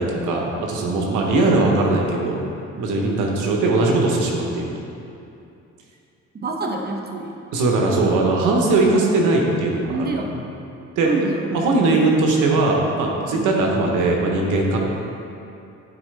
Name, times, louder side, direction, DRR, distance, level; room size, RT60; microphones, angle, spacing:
voice 1, 0.0-2.5 2.8-4.7 7.5-10.1 11.0-11.1 11.5-14.8, right 2 dB, 90° right, -1 dB, 1.1 m, -20 dB
voice 2, 6.4-7.3 9.9-10.4 11.0-11.5 13.3-13.5, right 3 dB, 30° right, 2 dB, 0.8 m, -27 dB
9.9 x 4.1 x 3.4 m, 2.7 s
cardioid pair, 90°, 30 cm